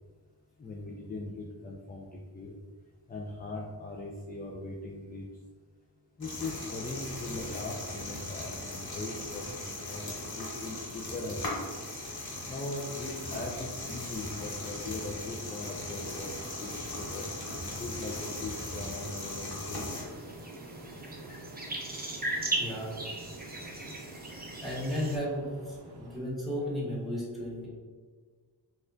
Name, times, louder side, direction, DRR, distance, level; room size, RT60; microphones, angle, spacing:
voice 1, 0.6-2.5 3.1-5.3 6.2-11.6 12.5-16.3 16.6-17.3 17.8-20.2, left 2 dB, 25° left, -2 dB, 0.4 m, -40 dB
sound 1, 6.2-20.0, left 2 dB, 60° left, 1.1 m, -39 dB
sound 2, 15.9-26.2, right 2 dB, 65° right, 0.6 m, -49 dB
sound 3, 19.9-25.2, right 2 dB, 20° right, 0.7 m, -37 dB
voice 2, 22.6-23.0 24.3-27.7, equal, ahead, -7 dB, 1.5 m, -34 dB
4.2 x 2.4 x 2.5 m, 1.5 s
wide cardioid pair, 65°, 42 cm